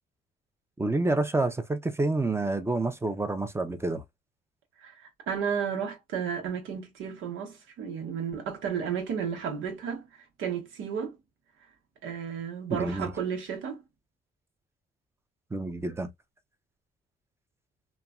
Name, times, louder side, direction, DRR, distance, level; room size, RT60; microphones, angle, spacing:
voice 1, 0.8-4.0 12.7-13.1 15.5-16.1, right 2 dB, 15° right, 0.6 m, -28 dB
voice 2, 4.8-11.2 12.0-13.8, right 7 dB, 85° right, 1.0 m, -33 dB
3.1 x 2.3 x 2.4 m
cardioid pair, 90°, 20 cm